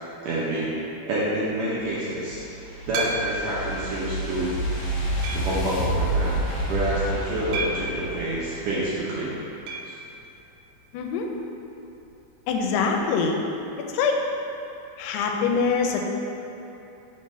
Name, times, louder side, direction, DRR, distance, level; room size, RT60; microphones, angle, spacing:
voice 1, 0.2-0.7 1.1-2.4 2.9-4.5 5.3-6.4 6.7-9.3 9.9-10.0, right 1 dB, 75° right, -8 dB, 2.0 m, -28 dB
sound 1, 1.8-9.0, right 1 dB, 65° left, 2.0 m, -29 dB
sound 2, 2.9-3.6 4.2-4.3 5.2-5.6 7.5-8.0 9.7-10.0 10.2-10.3 10.6-10.7 12.7-12.8, right 2 dB, 90° right, 2.7 m, -30 dB
voice 2, 10.9-11.3 12.5-13.4 13.9-14.2 15.0-16.1, left 5 dB, 85° left, 2 dB, 2.6 m, -24 dB
5.9 x 3.9 x 5.3 m, 2.9 s
omnidirectional pair, 4.7 m